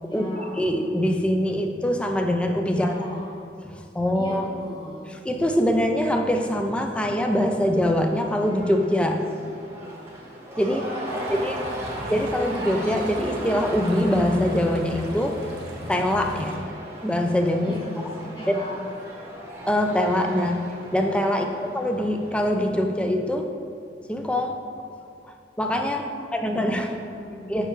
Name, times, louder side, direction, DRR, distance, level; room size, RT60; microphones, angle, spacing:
voice 1, 0.0-0.7 2.7-3.4 4.1-5.2 11.0-12.1 16.3-16.6 17.6-17.9 18.2-18.8 21.3-22.1 26.0-27.7, equal, 25° left, -4 dB, 1.1 m, -39 dB
voice 2, 0.6-2.9 3.7-4.5 5.3-9.2 10.6-10.9 11.3-11.6 12.1-15.4 15.9-16.5 17.0-17.8 19.7-21.4 21.7-23.5 24.1-24.6 25.6-27.0 27.5-27.7, left 1 dB, 5° left, 4 dB, 0.3 m, -23 dB
Cheering / Crowd, 6.5-23.1, right 1 dB, 15° right, 0.9 m, -38 dB
sound 1, 11.1-16.6, right 1 dB, 65° right, 0.8 m, -38 dB
6.6 x 5.5 x 3.1 m, 2.4 s
head